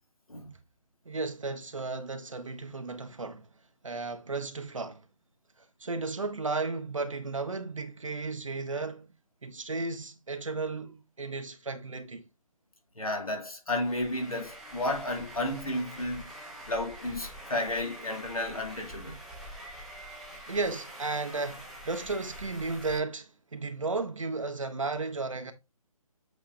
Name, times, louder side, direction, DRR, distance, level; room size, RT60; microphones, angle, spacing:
voice 1, 1.0-3.5 3.8-5.0 5.8-9.1 9.4-12.2 20.5-25.5, right 3 dB, 60° right, 1.2 m, -34 dB
voice 2, 12.9-16.3 16.7-19.2, left 1 dB, 70° left, 2.8 m, -32 dB
sound 1, 13.7-23.0, right 1 dB, ahead, 1.0 m, -45 dB
8.2 x 5.0 x 2.6 m
figure-of-eight pair, 145°, 19 cm